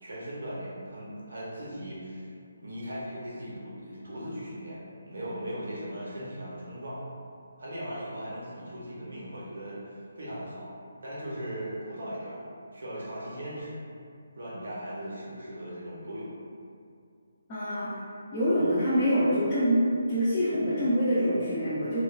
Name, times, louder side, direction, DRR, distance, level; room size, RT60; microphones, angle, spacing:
voice 1, 0.0-2.3 2.6-7.0 7.6-10.7 11.0-12.4 12.7-13.8 14.4-16.3, equal, 75° right, -7 dB, 0.7 m, -38 dB
voice 2, 17.5-17.9 18.3-19.8 20.1-22.0, equal, 15° left, -13 dB, 0.4 m, -25 dB
3.0 x 2.2 x 2.4 m, 2.4 s
hypercardioid pair, 175°, 0 cm